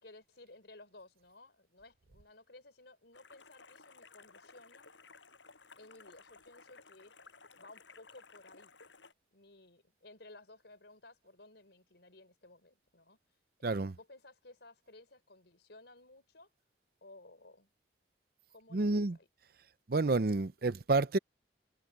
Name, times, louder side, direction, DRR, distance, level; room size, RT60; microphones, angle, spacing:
voice 1, 0.0-4.9 5.8-7.1 7.5-8.7 9.3-13.2 13.6-16.5 17.0-17.7 18.5-19.3, left 2 dB, 70° left, 4.4 m, -57 dB
sound 1, 3.1-9.1, left 4 dB, 85° left, 7.2 m, -57 dB
voice 2, 13.6-13.9 18.7-19.2 19.9-21.2, right 3 dB, 55° right, 0.6 m, -29 dB
head